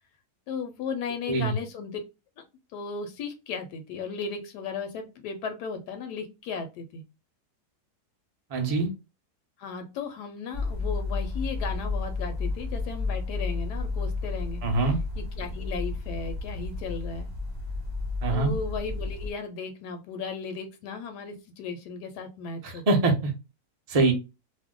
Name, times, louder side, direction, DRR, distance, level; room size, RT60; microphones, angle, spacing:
voice 1, 0.5-2.0 2.7-7.0 9.6-17.3 18.3-23.1, left 5 dB, 85° left, 6 dB, 1.2 m, -36 dB
voice 2, 8.5-8.9 14.6-15.0 18.2-18.5 22.6-23.3 23.9-24.1, right 3 dB, 50° right, 3 dB, 0.4 m, -24 dB
sound 1, 10.5-19.3, left 3 dB, 15° right, 1.0 m, -32 dB
2.7 x 2.1 x 3.5 m, 0.27 s
omnidirectional pair, 1.7 m